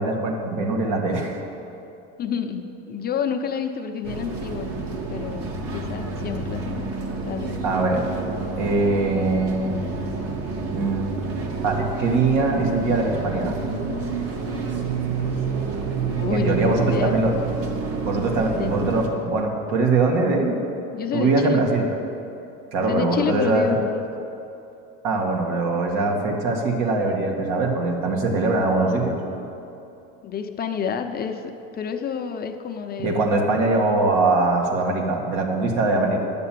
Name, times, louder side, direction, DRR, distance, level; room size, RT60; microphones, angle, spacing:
voice 1, 0.0-1.4 7.6-8.1 8.6-9.8 10.7-11.1 11.6-13.5 16.3-17.3 18.0-20.6 21.1-21.9 22.7-23.6 25.0-29.2 33.0-36.2, right 3 dB, 70° right, 1 dB, 2.1 m, -22 dB
voice 2, 2.2-4.7 5.1-6.9 7.2-7.6 16.1-17.2 18.5-18.7 20.9-21.6 22.9-24.0 30.2-33.3, left 7 dB, 30° left, 6 dB, 0.7 m, -29 dB
sound 1, 4.0-19.1, right 4 dB, 50° right, 1.6 m, -28 dB
10.5 x 6.8 x 9.2 m, 2.8 s
supercardioid pair, 125°, 30 cm